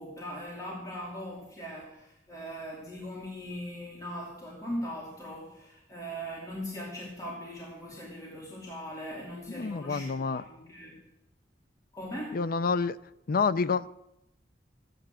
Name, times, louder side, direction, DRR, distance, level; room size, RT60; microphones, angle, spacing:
voice 1, 0.0-11.0 11.9-12.4, equal, 20° left, 2.7 m, -40 dB
voice 2, 9.5-10.4 12.3-13.0 13.3-13.9, left 5 dB, 55° left, 0.5 m, -28 dB
15.0 x 9.2 x 7.5 m
head